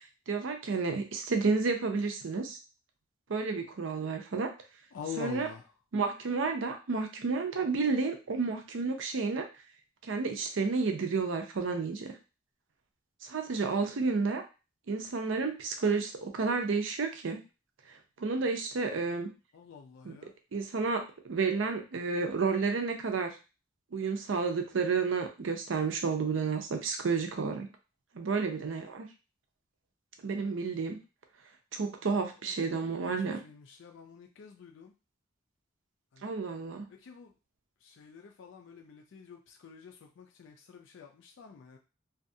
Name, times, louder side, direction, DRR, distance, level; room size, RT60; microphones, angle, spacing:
voice 1, 0.3-2.6 3.3-4.5 5.2-5.5 5.9-9.4 10.1-12.1 13.2-14.4 14.9-17.4 18.2-19.3 20.0-20.2 20.5-23.3 23.9-27.7 28.1-29.1 30.2-31.0 31.7-33.4 36.2-36.9, right 4 dB, 75° right, 5 dB, 0.5 m, -31 dB
voice 2, 4.9-5.6 19.5-20.3 32.9-33.2 33.4-34.9 36.1-36.3 36.9-37.3 37.8-41.8, left 6 dB, 70° left, 2 dB, 0.4 m, -46 dB
2.6 x 2.3 x 2.6 m, 0.31 s
head